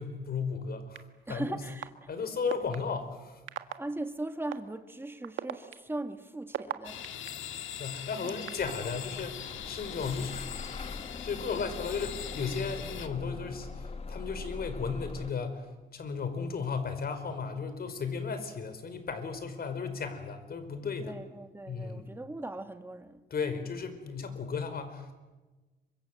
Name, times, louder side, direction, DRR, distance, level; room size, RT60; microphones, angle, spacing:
voice 1, 0.0-1.6 2.1-3.4 7.8-10.6 10.8-15.7 15.9-21.2 21.7-22.1 23.3-25.1, left 5 dB, 50° left, 4.9 m, -35 dB
sound 1, 0.9-1.0 1.8-1.9 2.5-2.8 3.5-3.7 4.5-4.6 5.2-7.3 8.0-8.7, right 12 dB, 75° right, 1.7 m, -35 dB
voice 2, 1.3-2.1 3.8-7.1 8.2-8.5 20.8-23.3, right 2 dB, 10° right, 2.1 m, -39 dB
sound 2, 6.8-13.1, left 10 dB, 75° left, 2.2 m, -42 dB
Bus / Engine starting, 8.6-15.3, left 4 dB, 30° left, 1.3 m, -42 dB
27.5 x 25.0 x 7.9 m
cardioid pair, 90°, 20 cm